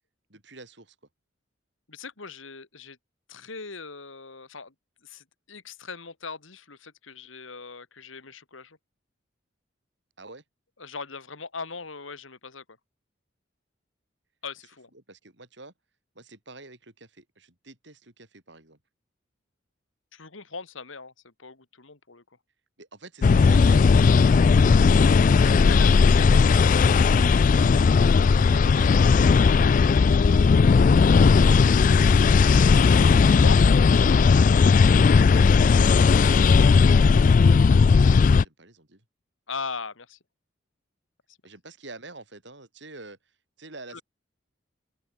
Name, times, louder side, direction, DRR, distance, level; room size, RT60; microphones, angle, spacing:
voice 1, 0.3-1.0 10.2-10.4 14.9-15.7 16.1-18.8 22.8-25.9 28.3-29.0 29.4-32.0 36.4-36.6 38.2-39.0 41.4-44.0, right 3 dB, 65° right, 4.4 m, -47 dB
voice 2, 1.9-3.0 3.3-4.7 5.0-8.8 10.8-12.6 14.4-14.9 20.1-22.2 25.7-25.9 26.3-26.4 33.3-33.6 33.9-34.3 36.8-36.9 39.5-40.2 43.9-44.0, left 4 dB, 90° left, 2.2 m, -39 dB
sound 1, 23.2-38.4, left 5 dB, 40° left, 0.3 m, -17 dB
open air
head